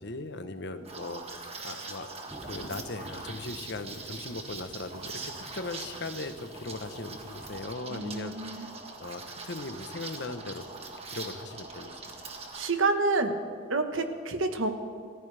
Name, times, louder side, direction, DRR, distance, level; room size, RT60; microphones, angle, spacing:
voice 1, 0.0-2.1 2.4-5.2 5.5-10.6 11.1-11.9, left 2 dB, 60° left, 9 dB, 1.0 m, -39 dB
Liquid, 0.9-12.7, right 3 dB, 30° right, 1.6 m, -42 dB
sound 1, 2.3-7.6, equal, ahead, 1.9 m, -49 dB
voice 2, 7.9-8.7 12.5-13.3 13.7-14.7, right 3 dB, 85° right, 7 dB, 1.4 m, -28 dB
28.0 x 14.5 x 3.4 m, 2.1 s
head